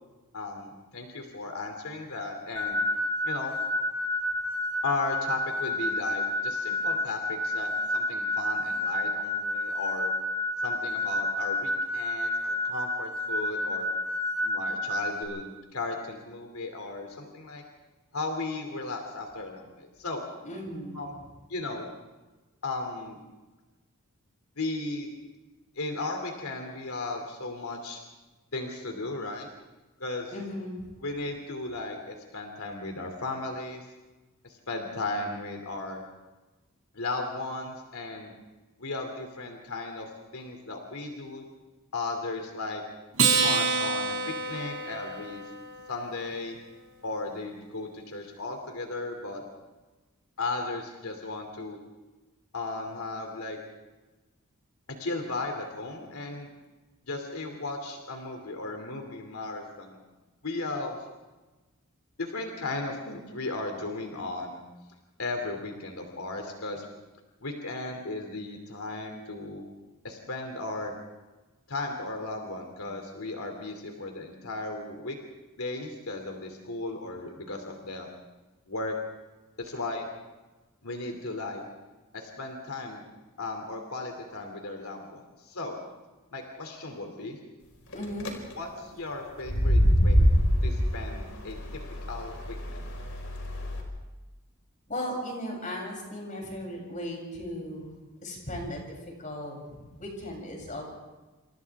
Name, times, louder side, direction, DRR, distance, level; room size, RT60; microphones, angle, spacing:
voice 1, 0.3-2.8 3.2-3.5 4.8-10.1 10.6-13.9 14.4-17.6 18.1-20.2 20.9-21.1 21.5-21.9 22.6-23.2 24.6-25.1 25.7-28.0 28.5-29.5 30.0-30.3 31.0-33.8 34.4-36.1 36.9-38.3 38.8-41.5 41.9-42.8 43.4-45.4 45.9-46.6 47.0-49.4 50.4-51.8 52.5-53.6 55.0-56.5 57.1-60.0 60.4-61.0 62.2-64.6 65.2-66.8 67.4-69.6 70.0-70.9 71.7-75.2 75.6-78.1 78.7-79.0 79.6-80.1 80.8-81.6 82.1-83.0 83.4-85.8 86.3-87.4 88.5-90.3 90.6-91.6 92.1-92.8, left 2 dB, 90° left, 3 dB, 2.9 m, -35 dB
sound 1, 2.6-15.2, left 1 dB, 10° left, 7.7 m, -30 dB
voice 2, 20.4-21.1 30.3-30.9 87.9-88.4 94.9-97.9 98.2-98.8 99.2-100.8, left 1 dB, 35° left, 0 dB, 7.5 m, -36 dB
Acoustic guitar, 43.1-45.8, right 4 dB, 80° right, 6.9 m, -27 dB
sound 2, 87.9-88.3 89.4-93.8, equal, 70° left, 5.0 m, -25 dB
28.5 x 28.0 x 3.6 m, 1.2 s
head